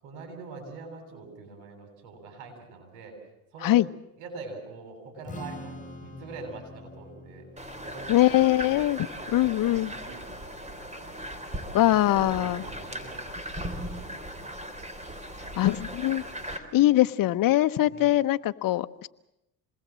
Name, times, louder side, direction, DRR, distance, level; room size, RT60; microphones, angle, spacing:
voice 1, 0.0-3.2 3.5-3.8 4.2-7.5 7.8-8.4 8.6-11.1 11.6-13.2 13.6-14.5 15.7-15.8 16.8-17.0 17.9-18.1, right 4 dB, 80° right, 4 dB, 7.9 m, -44 dB
Strum, 5.2-11.5, left 2 dB, 20° left, 4.9 m, -47 dB
sound 1, 7.6-16.6, right 1 dB, 15° right, 3.7 m, -38 dB
voice 2, 8.1-9.0 9.3-9.9 11.7-12.6 15.6-16.2 16.5-19.1, left 15 dB, 55° left, 10 dB, 1.0 m, -22 dB
26.5 x 20.5 x 7.5 m, 0.86 s
supercardioid pair, 80°, 42 cm